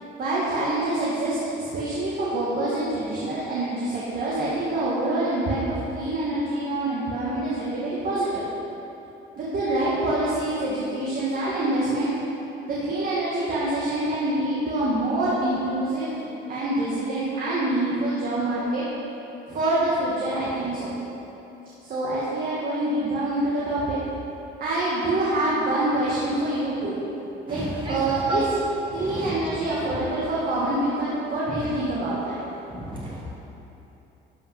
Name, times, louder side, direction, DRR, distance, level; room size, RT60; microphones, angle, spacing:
voice 1, 0.2-8.4 9.4-12.1 12.7-18.9 19.5-21.0 21.9-24.0 24.6-26.9 27.5-28.6 28.9-32.4, right 1 dB, 45° right, -8 dB, 1.8 m, -26 dB
voice 2, 32.8-33.2, right 2 dB, 25° right, -6 dB, 2.0 m, -30 dB
12.0 x 5.5 x 5.7 m, 2.9 s
cardioid pair, 145°, 20 cm